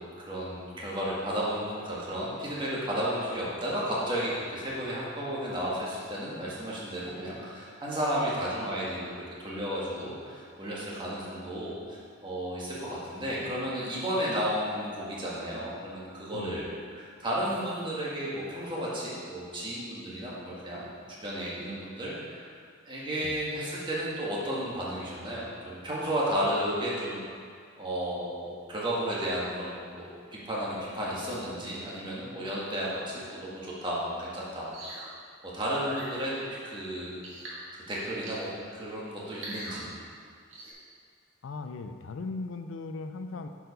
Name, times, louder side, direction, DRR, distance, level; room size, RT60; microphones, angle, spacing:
voice 1, 0.0-9.1 9.4-22.5 22.8-27.2 27.8-34.7 35.5-37.1 37.7-39.9, equal, 20° right, -6 dB, 1.6 m, -33 dB
voice 2, 16.3-16.7 23.2-23.4 41.4-43.5, left 3 dB, 65° left, 7 dB, 0.4 m, -38 dB
sound 1, 34.7-35.1 35.7-36.1 37.2-37.6 38.2-38.6 39.3-39.8 40.5-40.7, right 1 dB, 75° right, 1.7 m, -42 dB
7.6 x 4.8 x 5.3 m, 2.1 s
head